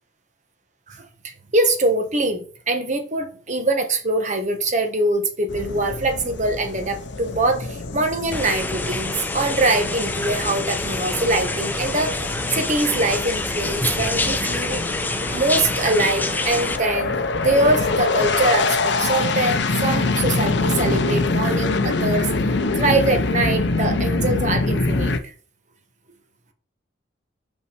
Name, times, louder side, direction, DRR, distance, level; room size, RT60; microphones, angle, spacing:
voice 1, 0.9-14.8 15.3-22.3 22.7-25.2, right 2 dB, 40° right, 1.2 m, -23 dB
sound 1, 5.5-25.2, left 3 dB, 60° left, 0.7 m, -25 dB
sound 2, 8.3-16.8, left 2 dB, 10° left, 0.5 m, -26 dB
5.6 x 5.6 x 4.6 m
head